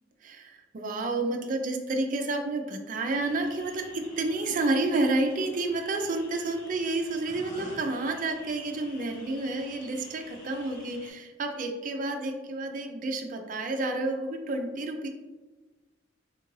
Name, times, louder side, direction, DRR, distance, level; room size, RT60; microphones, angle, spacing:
voice 1, 0.2-15.1, right 2 dB, 45° right, 4 dB, 0.4 m, -30 dB
sound 1, 3.1-11.1, left 1 dB, 20° left, 0.9 m, -49 dB
3.6 x 2.4 x 3.0 m, 1.2 s
head